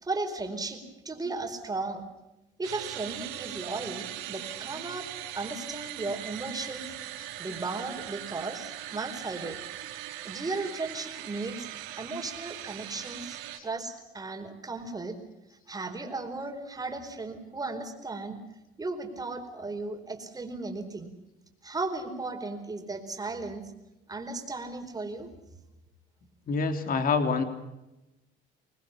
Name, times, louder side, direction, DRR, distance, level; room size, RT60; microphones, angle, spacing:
voice 1, 0.0-2.1 2.6-5.1 5.4-6.9 7.4-9.6 10.2-11.7 12.0-15.2 15.7-18.4 18.8-21.1 21.6-23.6 24.1-25.3, right 3 dB, 20° right, 5 dB, 4.6 m, -35 dB
sound 1, 2.6-13.6, right 13 dB, 90° right, 3.0 m, -40 dB
voice 2, 26.5-27.4, left 4 dB, 45° left, 7 dB, 3.0 m, -26 dB
26.0 x 20.5 x 7.2 m, 0.94 s
cardioid pair, 110°, 20 cm